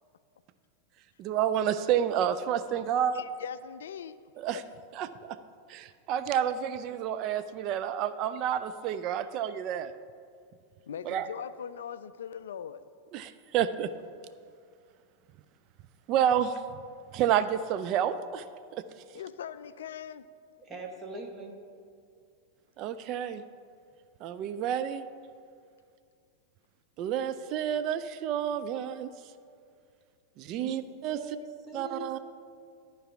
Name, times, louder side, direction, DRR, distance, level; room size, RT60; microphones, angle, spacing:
voice 1, 1.2-3.2 4.4-4.6 4.9-5.4 5.7-9.9 11.0-11.3 13.1-13.9 16.1-16.6 17.1-18.4 18.7-18.8 22.8-23.4 24.2-25.0 27.0-29.1 30.4-31.2 31.7-32.2, right 9 dB, 40° right, 0.4 m, -29 dB
voice 2, 3.1-4.2 4.5-4.6 10.9-12.8 19.1-20.3, left 8 dB, 65° left, 0.3 m, -40 dB
voice 3, 20.6-21.5 30.4-32.2, right 2 dB, 20° right, 1.3 m, -42 dB
13.0 x 4.6 x 6.0 m
figure-of-eight pair, 90°, 0 cm